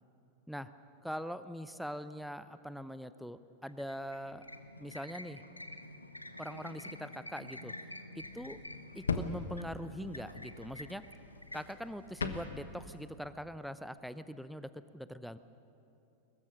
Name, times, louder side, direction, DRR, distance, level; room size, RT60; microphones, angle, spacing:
voice 1, 1.0-4.5 4.8-5.4 6.4-7.7 8.2-8.6 8.9-11.0 11.5-15.4, equal, ahead, 13 dB, 0.7 m, -42 dB
sound 1, 3.6-13.0, left 1 dB, 85° left, 1.0 m, -49 dB
sound 2, 8.2-13.1, left 4 dB, 70° left, 1.3 m, -41 dB
22.5 x 21.0 x 6.4 m, 2.8 s
figure-of-eight pair, 90°, 0 cm